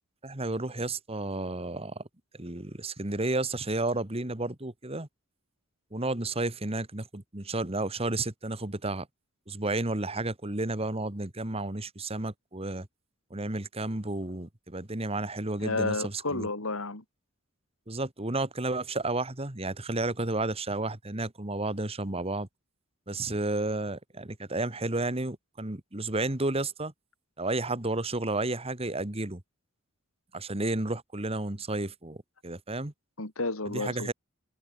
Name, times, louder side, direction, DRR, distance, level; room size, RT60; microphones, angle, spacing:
voice 1, 0.2-2.0 2.4-5.1 5.9-9.1 9.5-12.9 13.3-16.5 17.9-22.5 23.1-26.9 27.4-29.4 30.3-32.2 32.4-32.9 33.7-34.1, right 2 dB, 30° right, 2.0 m, -32 dB
voice 2, 15.6-17.0 33.2-34.1, left 3 dB, 85° left, 3.5 m, -31 dB
head